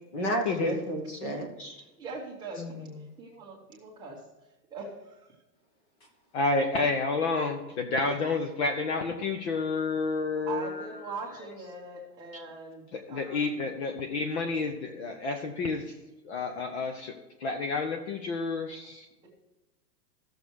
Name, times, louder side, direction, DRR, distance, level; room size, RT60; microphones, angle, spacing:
voice 1, 0.1-1.8, right 1 dB, 25° left, 2 dB, 1.2 m, -31 dB
voice 2, 1.8-2.9 3.2-4.2 4.7-5.3 10.4-13.6 19.2-19.3, right 4 dB, 10° right, -4 dB, 1.4 m, -42 dB
voice 3, 6.3-10.9 12.9-15.9 16.2-17.1 17.4-19.1, left 3 dB, 40° left, 6 dB, 0.9 m, -30 dB
14.5 x 7.0 x 4.7 m, 1.0 s
hypercardioid pair, 170°, 49 cm